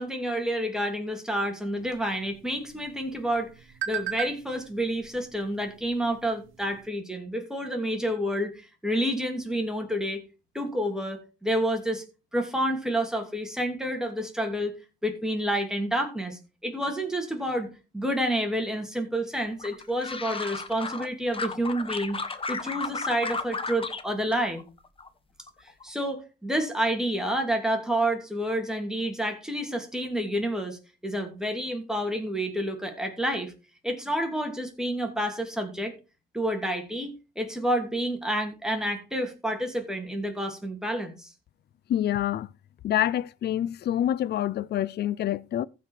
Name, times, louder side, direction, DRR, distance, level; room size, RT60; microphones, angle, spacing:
voice 1, 0.0-3.5 3.9-10.2 10.5-12.0 12.3-14.7 15.0-22.2 22.5-24.6 25.8-33.5 33.8-36.0 36.3-41.3, equal, 5° right, 2.6 m, -29 dB
sound 1, 1.8-6.9, right 10 dB, 85° right, 1.0 m, -40 dB
sound 2, 19.6-21.1 21.3-24.0 24.3-25.1 25.4-25.8, left 4 dB, 25° left, 1.2 m, -34 dB
voice 2, 41.9-42.5 42.8-45.7, left 11 dB, 55° left, 0.5 m, -26 dB
15.0 x 5.2 x 4.3 m
cardioid pair, 90°, 20 cm